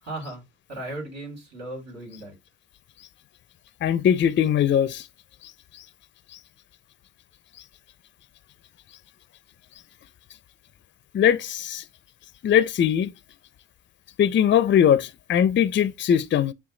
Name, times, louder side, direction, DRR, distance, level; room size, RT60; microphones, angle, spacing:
voice 1, 0.0-0.4 0.7-2.4, right 1 dB, 60° right, 2.7 m, -36 dB
voice 2, 3.8-5.0 11.1-11.8 12.4-13.1 14.2-16.5, left 9 dB, 40° left, 0.4 m, -20 dB
5.6 x 2.4 x 3.7 m
cardioid pair, 90°, 30 cm